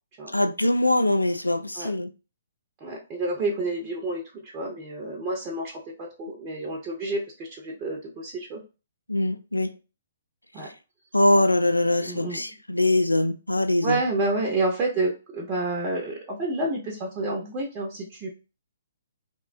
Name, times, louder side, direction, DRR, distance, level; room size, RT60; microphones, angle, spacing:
voice 1, 0.3-2.1 9.1-9.7 11.1-14.0, left 1 dB, 85° left, 0.3 m, -22 dB
voice 2, 2.8-8.6 10.5-10.7 12.0-12.4 13.8-18.3, right 2 dB, 25° right, 0.6 m, -29 dB
3.0 x 2.1 x 2.4 m
figure-of-eight pair, 125°, 0 cm